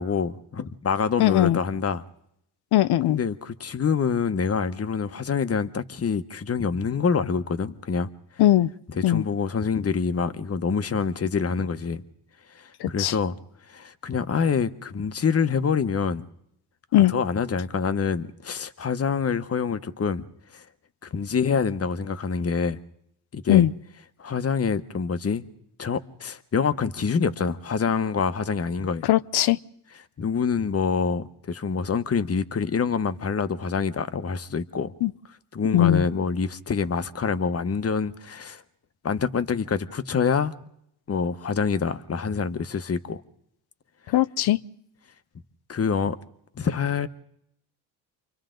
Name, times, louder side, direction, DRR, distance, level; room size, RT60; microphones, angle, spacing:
voice 1, 0.0-2.0 3.1-8.1 9.0-12.0 12.5-13.4 13.7-16.2 17.1-20.2 20.5-20.6 21.0-22.8 23.3-23.7 24.2-25.5 25.8-29.1 30.2-34.9 35.5-38.6 39.0-40.5 41.1-43.2 45.7-46.2 46.5-47.1, left 5 dB, 30° left, 1.2 m, -26 dB
voice 2, 1.2-1.6 2.7-3.2 8.4-8.7 9.0-9.2 12.8-13.1 16.9-17.1 23.5-23.7 29.0-29.6 35.0-35.1 35.7-36.0 44.1-44.6, left 13 dB, 55° left, 0.7 m, -19 dB
29.0 x 24.5 x 3.9 m
supercardioid pair, 65°, 47 cm